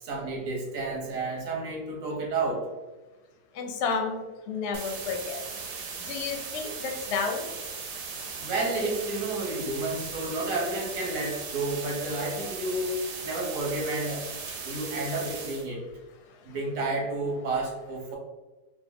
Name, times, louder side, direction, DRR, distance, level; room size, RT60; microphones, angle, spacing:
voice 1, 0.0-2.7 8.4-12.9 13.2-15.8 16.4-18.2, right 2 dB, 65° right, -1 dB, 1.2 m, -31 dB
voice 2, 3.5-5.4 6.1-7.5, left 5 dB, 70° left, 3 dB, 0.7 m, -31 dB
sound 1, 4.7-15.7, right 5 dB, 90° right, 1.2 m, -38 dB
3.1 x 2.0 x 3.5 m, 1.2 s
omnidirectional pair, 1.7 m